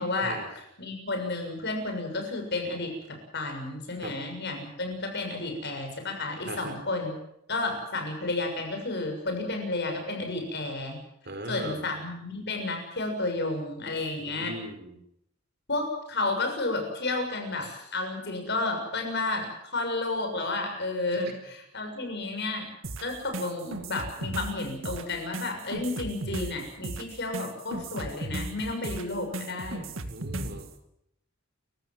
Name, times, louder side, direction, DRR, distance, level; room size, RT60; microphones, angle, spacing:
voice 1, 0.0-7.1 7.5-11.0 11.5-14.5 15.7-22.7 23.0-29.9, left 2 dB, 55° left, 4 dB, 6.8 m, -32 dB
voice 2, 11.3-11.8 14.2-15.0 21.1-21.2 30.1-30.7, right 1 dB, 50° right, 7 dB, 4.5 m, -38 dB
sound 1, 22.8-30.7, right 2 dB, 75° right, 2.0 m, -36 dB
29.5 x 16.0 x 7.6 m, 0.76 s
head